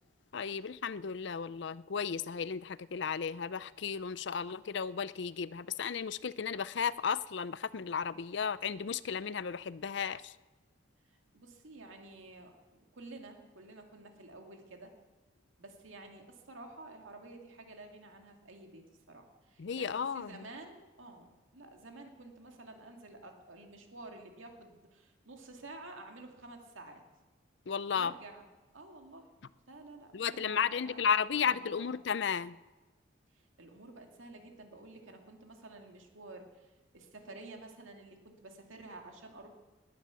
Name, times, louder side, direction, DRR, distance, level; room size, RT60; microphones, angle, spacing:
voice 1, 0.3-10.3 19.6-20.3 27.7-28.1 30.1-32.6, left 6 dB, 65° left, 18 dB, 0.5 m, -34 dB
voice 2, 11.1-14.9 15.6-27.0 27.9-28.5 28.7-29.3 29.7-31.1 31.3-31.9 33.3-39.5, right 2 dB, 85° right, 3 dB, 2.2 m, -51 dB
19.5 x 10.0 x 7.0 m, 1.2 s
head